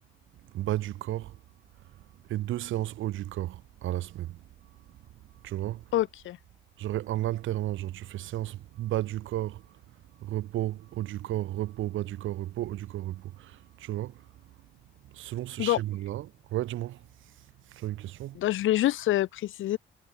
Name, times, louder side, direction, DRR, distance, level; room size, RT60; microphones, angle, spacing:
voice 1, 0.4-1.4 1.8-4.4 4.9-5.0 5.4-5.9 6.8-9.8 10.2-14.3 15.0-18.4, right 14 dB, 85° right, 2.5 m, -33 dB
voice 2, 5.9-6.4 15.6-15.8 18.4-19.8, left 14 dB, 80° left, 1.6 m, -26 dB
cardioid pair, 90°, 20 cm